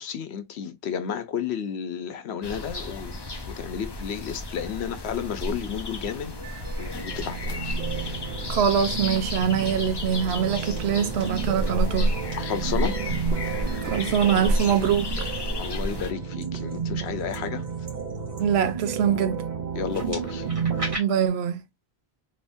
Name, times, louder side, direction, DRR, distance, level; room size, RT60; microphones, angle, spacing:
voice 1, 0.0-7.8 12.4-13.0 15.6-17.9 19.7-20.5, left 8 dB, 85° left, 0.9 m, -32 dB
sound 1, 2.4-16.1, left 1 dB, 30° left, 0.6 m, -31 dB
sound 2, 6.3-20.9, right 6 dB, 50° right, 0.7 m, -32 dB
voice 2, 8.5-12.2 13.8-15.3 18.4-19.4 21.0-21.6, right 8 dB, 80° right, 0.9 m, -24 dB
sound 3, 10.1-10.4 10.7-11.2 12.1-12.4 13.2-13.5 14.3-14.8 15.3-15.8 16.4-19.1 19.8-21.0, right 1 dB, 30° right, 1.7 m, -40 dB
3.5 x 3.0 x 2.5 m
omnidirectional pair, 1.1 m